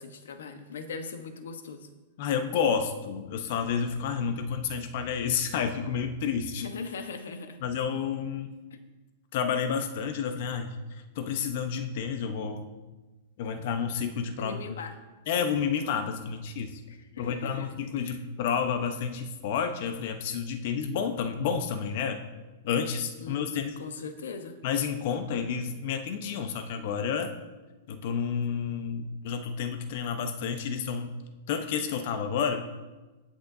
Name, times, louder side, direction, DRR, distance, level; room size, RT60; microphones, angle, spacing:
voice 1, 0.0-1.9 6.6-7.6 8.7-8.8 14.4-15.0 16.9-17.7 18.0-18.2 23.2-24.6, left 5 dB, 90° left, 7 dB, 1.2 m, -40 dB
voice 2, 2.2-6.6 7.6-8.5 9.3-12.7 13.4-14.6 15.3-16.8 17.2-22.2 22.6-23.8 24.6-27.3 27.9-31.1 31.5-32.7, left 7 dB, 55° left, 7 dB, 1.0 m, -30 dB
19.0 x 6.5 x 2.8 m, 1.2 s
hypercardioid pair, 145°, 0 cm